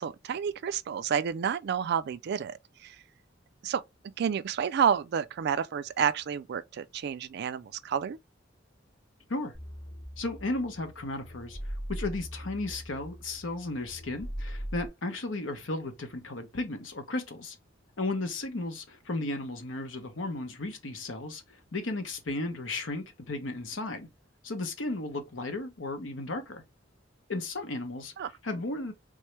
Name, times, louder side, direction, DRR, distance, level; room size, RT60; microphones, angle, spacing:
voice 1, 0.0-2.6 2.8-3.0 3.6-3.8 4.2-8.2 28.2-28.3, right 7 dB, 60° right, 0.3 m, -30 dB
sound 1, 9.5-14.9, equal, 35° left, 2.2 m, -40 dB
voice 2, 10.2-17.6 18.0-24.1 24.4-26.6 27.3-28.1 28.4-28.9, left 2 dB, 85° left, 1.0 m, -34 dB
3.6 x 3.1 x 3.2 m
head